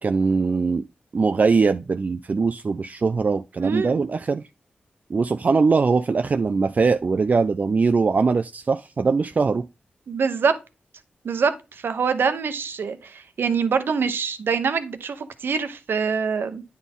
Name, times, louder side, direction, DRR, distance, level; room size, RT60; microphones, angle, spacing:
voice 1, 0.0-0.8 1.1-4.4 5.1-9.7, right 4 dB, 45° right, 0.3 m, -21 dB
voice 2, 3.6-3.9 10.1-10.5 11.2-16.6, right 5 dB, 80° right, 0.9 m, -24 dB
9.5 x 4.1 x 3.6 m
cardioid pair, 75°, 4 cm